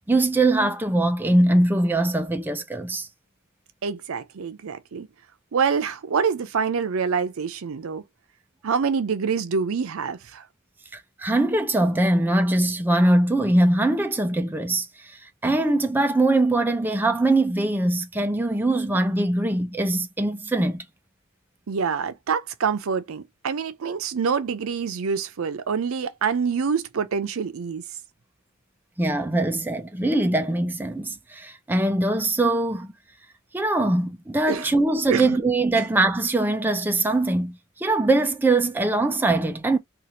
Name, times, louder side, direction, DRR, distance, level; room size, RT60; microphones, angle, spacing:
voice 1, 0.1-3.1 10.9-20.8 29.0-32.9 33.5-39.8, right 2 dB, 10° right, 0.4 m, -22 dB
voice 2, 3.8-5.1 5.5-8.0 8.6-10.4 21.7-27.8 34.5-34.7 35.1-35.4 35.8-35.9, right 6 dB, 90° right, 0.5 m, -26 dB
2.8 x 2.4 x 2.9 m
head